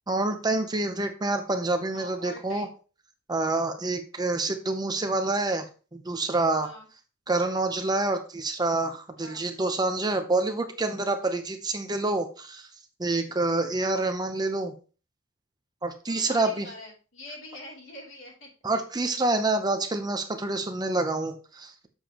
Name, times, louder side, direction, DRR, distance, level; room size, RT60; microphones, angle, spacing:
voice 1, 0.1-2.7 3.3-5.7 5.9-6.7 7.3-12.7 13.0-14.7 15.8-16.7 18.6-21.9, right 2 dB, 20° right, 7 dB, 0.7 m, -27 dB
voice 2, 1.9-2.7 6.6-6.9 9.2-9.5 16.1-18.5, left 1 dB, 70° left, -3 dB, 3.0 m, -44 dB
7.2 x 6.9 x 2.9 m, 0.35 s
head